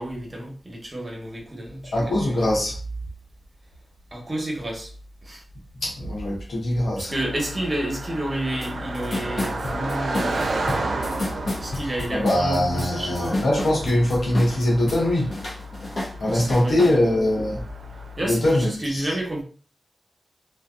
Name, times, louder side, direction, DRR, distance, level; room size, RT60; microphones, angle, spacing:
voice 1, 0.0-2.4 4.1-4.9 5.2-5.4 7.0-10.5 11.6-13.4 16.2-17.1 18.2-19.4, right 1 dB, 30° right, 1.0 m, -30 dB
voice 2, 1.9-2.8 5.8-7.1 12.1-15.3 16.2-17.6 18.3-19.1, left 1 dB, 80° left, 1.1 m, -22 dB
Car passing by, 7.1-18.2, right 1 dB, 70° right, 0.4 m, -32 dB
sound 1, 8.6-8.7 8.9-15.0 15.3-17.0, left 2 dB, 55° left, 0.9 m, -30 dB
2.7 x 2.3 x 2.4 m
cardioid pair, 55°, 0 cm